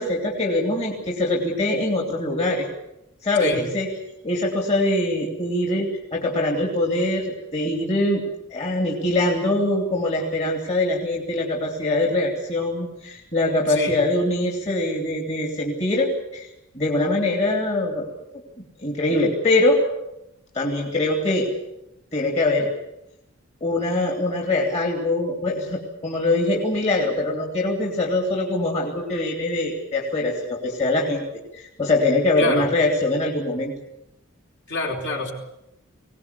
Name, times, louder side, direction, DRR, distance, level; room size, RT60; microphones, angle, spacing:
voice 1, 0.0-2.7 3.2-3.9 4.2-8.2 8.5-16.5 16.7-18.1 18.8-19.8 20.5-21.5 22.1-22.7 23.6-31.2 31.5-33.7, left 2 dB, 30° left, 0 dB, 3.0 m, -23 dB
voice 2, 32.4-32.7 34.7-35.3, left 2 dB, 55° left, 0 dB, 4.3 m, -26 dB
22.0 x 18.5 x 8.3 m, 0.87 s
head